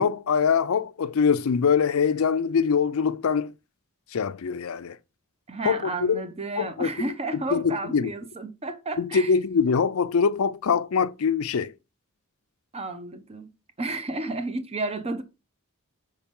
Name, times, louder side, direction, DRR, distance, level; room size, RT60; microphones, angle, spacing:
voice 1, 0.0-3.5 4.1-5.0 5.6-6.2 6.6-6.9 7.3-8.1 9.0-11.7, left 6 dB, 65° left, 0.5 m, -23 dB
voice 2, 5.5-9.4 12.7-13.5 13.8-15.2, right 2 dB, 25° right, 0.8 m, -32 dB
5.7 x 5.4 x 5.3 m
head